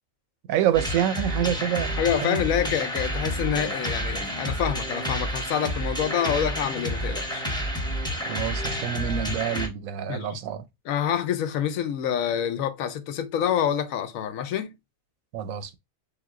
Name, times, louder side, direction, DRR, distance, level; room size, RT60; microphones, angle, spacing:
voice 1, 0.5-2.4 8.3-10.6 15.3-15.7, right 10 dB, 85° right, 1.0 m, -27 dB
sound 1, 0.7-9.7, equal, 5° left, 0.7 m, -30 dB
voice 2, 2.0-7.4 10.1-10.3 10.9-14.7, left 9 dB, 80° left, 1.0 m, -27 dB
3.5 x 3.1 x 3.6 m
omnidirectional pair, 1.4 m